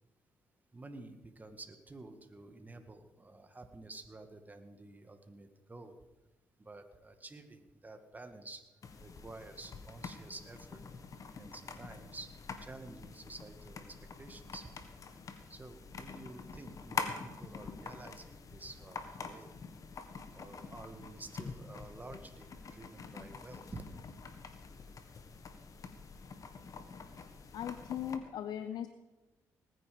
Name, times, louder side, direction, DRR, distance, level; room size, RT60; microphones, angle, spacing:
voice 1, 0.7-5.9 6.6-8.6 9.0-10.8 11.4-12.3 12.6-13.9 14.2-14.7 15.5-19.5 20.3-23.8, right 2 dB, 25° right, 7 dB, 1.9 m, -50 dB
sound 1, 8.8-28.2, left 5 dB, 50° left, 1.7 m, -46 dB
voice 2, 27.5-28.9, left 9 dB, 75° left, 11 dB, 0.7 m, -38 dB
19.0 x 9.7 x 5.3 m, 1.1 s
supercardioid pair, 65°, 7 cm